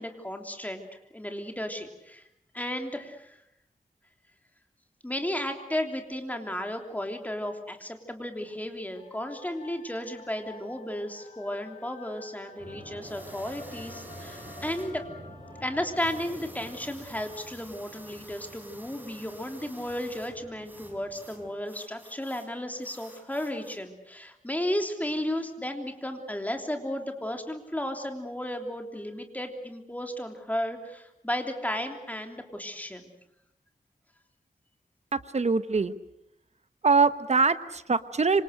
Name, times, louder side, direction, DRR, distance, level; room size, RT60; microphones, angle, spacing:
voice 1, 0.0-2.2 2.5-3.4 5.0-15.0 15.6-33.1, left 1 dB, 10° left, 4 dB, 3.2 m, -34 dB
sound 1, 8.9-16.0, left 4 dB, 50° left, 1.9 m, -50 dB
sound 2, 12.6-21.5, right 1 dB, 30° right, 5.9 m, -48 dB
sound 3, 13.0-14.9 15.9-20.3 20.6-22.5 22.8-23.8, right 1 dB, 10° right, 5.3 m, -51 dB
voice 2, 35.1-35.9 36.8-38.4, right 4 dB, 50° right, 12 dB, 1.2 m, -23 dB
26.5 x 26.0 x 6.6 m, 0.82 s
wide cardioid pair, 105°, 15 cm